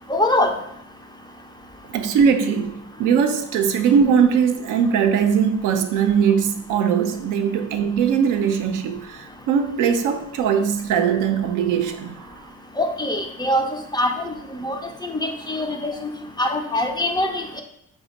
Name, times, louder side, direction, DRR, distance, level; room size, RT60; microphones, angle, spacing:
voice 1, 0.1-0.5 12.8-13.7 13.9-16.1 16.4-17.6, left 1 dB, 15° left, 0.4 m, -23 dB
voice 2, 1.9-2.7 3.0-12.4, right 7 dB, 85° right, 0.5 m, -20 dB
4.2 x 2.2 x 4.0 m
cardioid pair, 90°, 30 cm